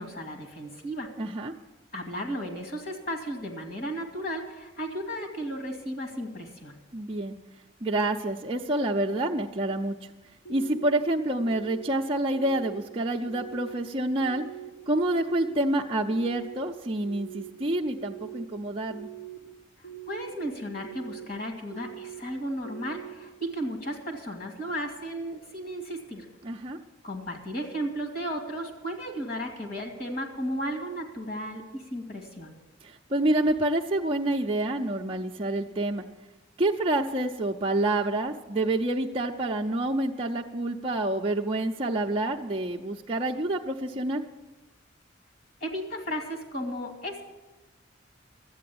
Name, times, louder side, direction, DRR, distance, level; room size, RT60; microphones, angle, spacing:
voice 1, 0.0-1.1 1.9-6.8 20.1-26.3 27.0-32.5 45.6-47.2, equal, 50° left, 2 dB, 2.4 m, -34 dB
voice 2, 1.2-1.5 6.9-7.3 7.8-10.1 10.5-14.4 14.9-19.1 26.4-26.8 32.8-36.0 36.6-44.2, right 1 dB, 30° right, -1 dB, 0.5 m, -28 dB
sound 1, 10.4-10.9 11.4-11.9 12.3-12.8 13.3-13.7 14.2-14.7 15.1-15.6 16.1-16.6 17.0-17.5 18.0-18.4 18.9-19.4 19.8-20.3 20.8-21.3 21.7-22.2 22.6-23.1, right 13 dB, 75° left, 4.0 m, -42 dB
12.5 x 8.8 x 8.5 m, 1.1 s
head